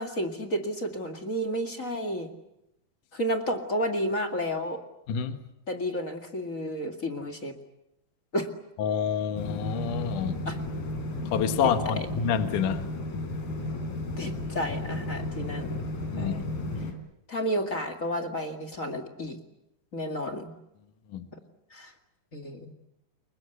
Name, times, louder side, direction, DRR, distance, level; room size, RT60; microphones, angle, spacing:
voice 1, 0.0-2.3 3.1-4.8 5.7-7.5 8.3-8.5 10.5-10.6 11.9-12.1 14.2-15.9 16.2-16.4 17.3-19.4 19.9-20.5 21.7-21.9 22.3-22.7, equal, 30° left, 4 dB, 2.0 m, -31 dB
voice 2, 5.1-5.4 8.8-10.4 11.3-12.9 16.1-16.4 16.7-16.9 21.1-21.3, left 7 dB, 70° left, 8 dB, 2.9 m, -28 dB
sound 1, 9.4-16.9, left 2 dB, 85° left, 5.4 m, -33 dB
29.0 x 23.0 x 8.3 m, 0.86 s
omnidirectional pair, 4.0 m